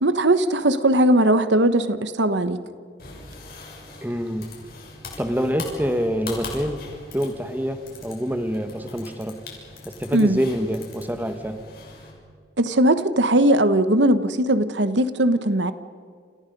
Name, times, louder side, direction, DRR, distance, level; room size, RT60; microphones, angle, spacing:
voice 1, 0.0-2.6 10.1-10.4 12.6-15.7, right 1 dB, 80° right, 11 dB, 1.2 m, -19 dB
sound 1, 3.0-12.1, left 3 dB, 55° left, 6.7 m, -41 dB
voice 2, 4.0-4.5 5.2-6.8 7.1-9.4 10.0-11.7, equal, 10° right, 7 dB, 1.6 m, -26 dB
29.0 x 27.5 x 5.4 m, 2.1 s
head